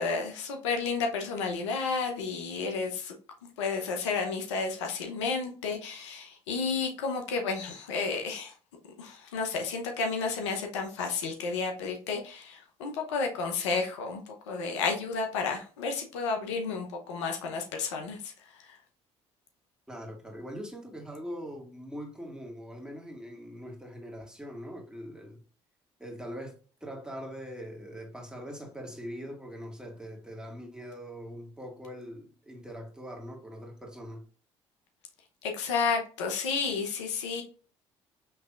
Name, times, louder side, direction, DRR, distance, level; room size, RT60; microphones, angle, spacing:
voice 1, 0.0-3.1 3.6-8.5 9.0-18.8 35.4-37.4, left 4 dB, 85° left, 0.8 m, -31 dB
voice 2, 19.9-25.4 26.0-26.5 26.8-34.2, equal, 5° right, 1.8 m, -42 dB
5.7 x 3.2 x 2.4 m
hypercardioid pair, 60°, 15 cm